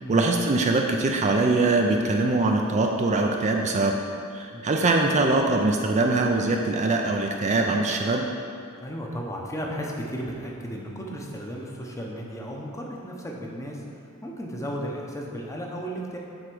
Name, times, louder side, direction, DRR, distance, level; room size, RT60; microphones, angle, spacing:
voice 1, 0.1-4.0 4.3-8.3, right 2 dB, 30° right, 2 dB, 0.4 m, -22 dB
voice 2, 8.8-13.8 14.2-16.2, equal, 15° left, -1 dB, 0.8 m, -34 dB
7.9 x 3.6 x 6.1 m, 2.4 s
head